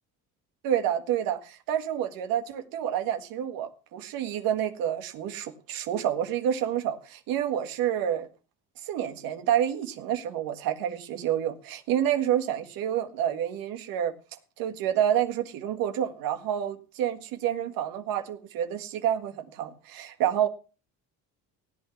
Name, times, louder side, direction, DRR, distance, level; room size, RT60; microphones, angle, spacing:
voice 1, 0.6-8.3 8.8-14.1 14.6-20.5, right 10 dB, 85° right, 1.8 m, -28 dB
16.5 x 8.6 x 5.8 m
cardioid pair, 105°, 34 cm